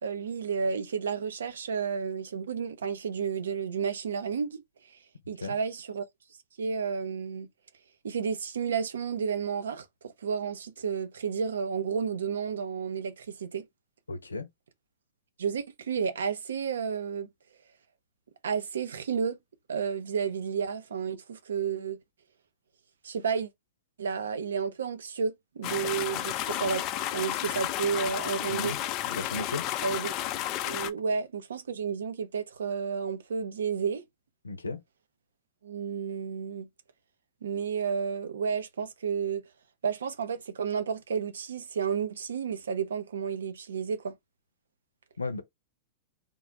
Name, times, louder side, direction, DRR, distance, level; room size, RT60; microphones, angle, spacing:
voice 1, 0.0-4.6 4.9-5.0 5.3-6.0 6.6-7.5 8.0-13.6 15.4-17.3 18.4-19.4 19.7-22.0 23.0-23.5 24.0-26.8 27.1-28.7 29.8-30.1 30.6-34.0 35.6-36.7 37.4-39.4 39.8-44.2, right 6 dB, 75° right, 0.7 m, -31 dB
voice 2, 14.1-14.5 28.5-28.8 29.1-29.6 34.4-34.8 45.2-45.4, left 2 dB, 90° left, 0.7 m, -34 dB
sound 1, 25.6-30.9, left 13 dB, 40° left, 0.4 m, -32 dB
3.7 x 2.4 x 3.1 m
hypercardioid pair, 105°, 0 cm